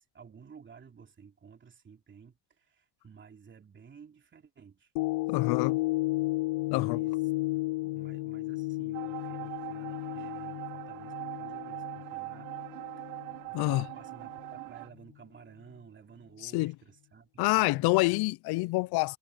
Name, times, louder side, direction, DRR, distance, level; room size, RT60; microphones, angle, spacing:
voice 1, 0.0-4.9 5.3-5.7 6.7-7.3 7.8-12.5 13.0-17.8, right 6 dB, 25° right, 3.2 m, -54 dB
sound 1, 5.0-13.4 13.9-14.0, left 21 dB, 75° left, 1.0 m, -33 dB
voice 2, 5.3-5.8 6.7-7.0 13.5-13.9 16.4-16.7 17.4-19.2, left 21 dB, 50° left, 0.6 m, -27 dB
sound 2, 8.9-14.9, right 22 dB, 85° right, 1.3 m, -41 dB
cardioid pair, 145°, 49 cm